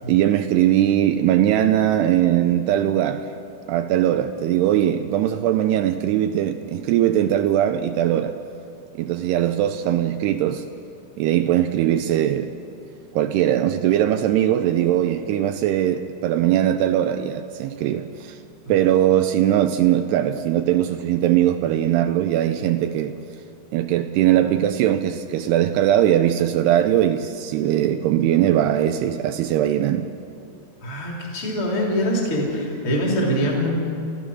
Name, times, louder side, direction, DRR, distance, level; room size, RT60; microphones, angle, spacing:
voice 1, 0.1-3.2 3.7-8.4 9.0-10.6 11.2-12.5 13.1-18.4 18.7-23.1 23.7-30.1, right 11 dB, 80° right, 8 dB, 2.5 m, -20 dB
voice 2, 30.8-33.7, equal, 30° left, -2 dB, 3.7 m, -23 dB
29.0 x 14.5 x 6.3 m, 2.6 s
omnidirectional pair, 5.1 m